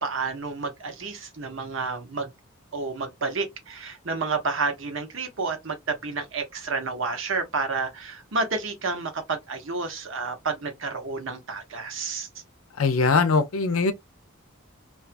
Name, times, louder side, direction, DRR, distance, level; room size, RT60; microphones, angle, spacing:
voice 1, 0.0-2.3 2.7-12.3, right 4 dB, 60° right, 0.8 m, -30 dB
voice 2, 12.8-13.9, left 4 dB, 75° left, 0.5 m, -21 dB
2.5 x 2.4 x 2.4 m
head